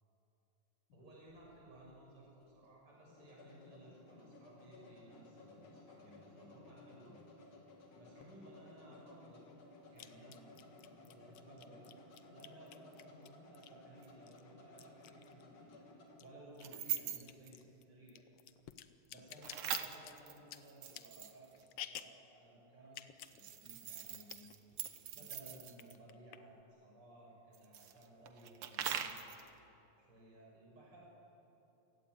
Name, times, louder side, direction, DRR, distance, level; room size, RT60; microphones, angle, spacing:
sound 1, 0.9-16.2, left 2 dB, 65° left, 4.6 m, -59 dB
voice 1, 0.9-7.2 7.4-7.7 8.0-9.5 9.9-11.9 12.3-15.8 16.2-18.2 19.1-24.5 25.1-29.2 30.0-31.0, right 1 dB, 40° right, -3 dB, 7.3 m, -58 dB
sound 2, 8.2-8.3 10.0-13.9 14.3-15.8 16.1-22.2 22.9-23.4 23.7-23.8 23.9-24.5 24.8-25.4 25.7-26.6, left 11 dB, 85° left, 1.3 m, -52 dB
sound 3, 14.0-14.1 16.6-17.5 19.4-21.6 23.2-25.9 27.5-29.5, right 9 dB, 65° right, 1.4 m, -42 dB
30.0 x 17.5 x 9.5 m, 3.0 s
omnidirectional pair, 3.9 m